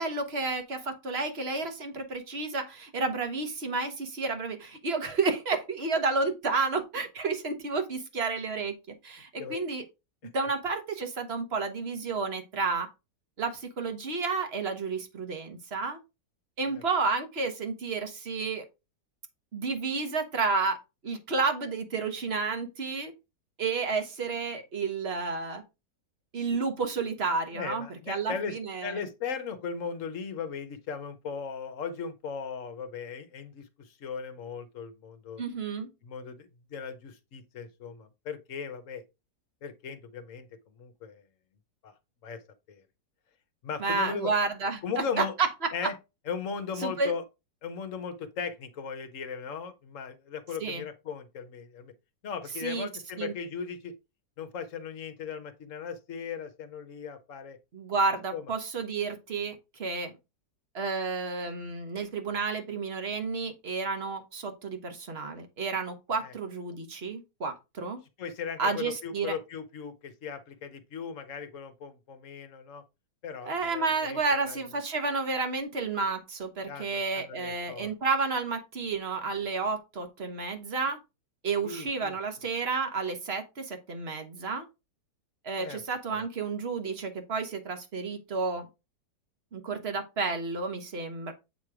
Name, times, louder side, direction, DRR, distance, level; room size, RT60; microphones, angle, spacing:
voice 1, 0.0-8.8 9.0-9.8 10.3-12.9 13.4-16.0 16.6-18.6 19.5-20.8 21.0-23.1 23.6-25.6 26.3-29.0 35.4-35.9 43.8-45.7 46.8-47.1 50.6-50.8 52.6-52.9 53.2-53.3 57.7-60.1 60.7-68.0 68.6-69.4 73.5-81.0 81.4-84.7 85.4-88.7 89.5-91.3, right 4 dB, 40° right, 1.2 m, -31 dB
voice 2, 27.5-28.5 28.8-35.4 36.0-39.0 39.6-40.5 40.8-41.2 41.8-41.9 42.2-42.4 42.7-42.8 43.6-44.3 44.8-45.3 45.7-46.0 46.3-47.2 47.6-51.9 52.2-53.9 54.4-57.6 58.3-58.4 66.2-66.3 68.2-72.8 73.2-74.2 74.5-74.6 76.7-77.9 81.6-82.2 85.6-85.8 86.1-86.2, left 6 dB, 55° left, 1.1 m, -37 dB
8.2 x 3.1 x 4.9 m
omnidirectional pair, 1.9 m